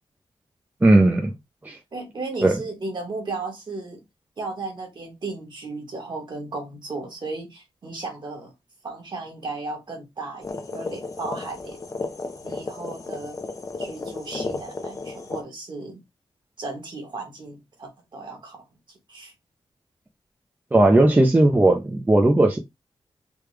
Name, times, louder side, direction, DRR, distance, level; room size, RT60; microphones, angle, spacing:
voice 1, 0.8-1.3 1.6-1.8 2.4-2.6 20.7-22.6, right 2 dB, 20° right, 0.6 m, -17 dB
voice 2, 1.9-4.0 4.4-8.5 8.8-12.0 12.4-13.4 13.8-16.0 16.6-18.6 19.1-19.3, right 3 dB, 55° right, 1.4 m, -35 dB
sound 1, 10.4-15.4, left 3 dB, 35° left, 0.6 m, -33 dB
3.5 x 2.3 x 3.2 m
cardioid pair, 85°, 10 cm